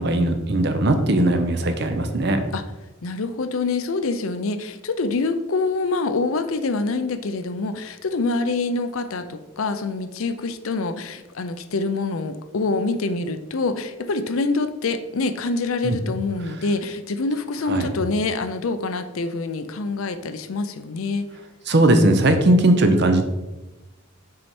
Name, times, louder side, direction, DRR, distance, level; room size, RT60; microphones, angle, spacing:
voice 1, 0.0-2.4 15.8-16.0 17.7-17.9 21.7-23.2, right 1 dB, 55° right, 7 dB, 0.7 m, -18 dB
voice 2, 3.0-21.3, left 3 dB, 75° left, 10 dB, 0.5 m, -25 dB
6.3 x 4.6 x 4.3 m, 1.1 s
head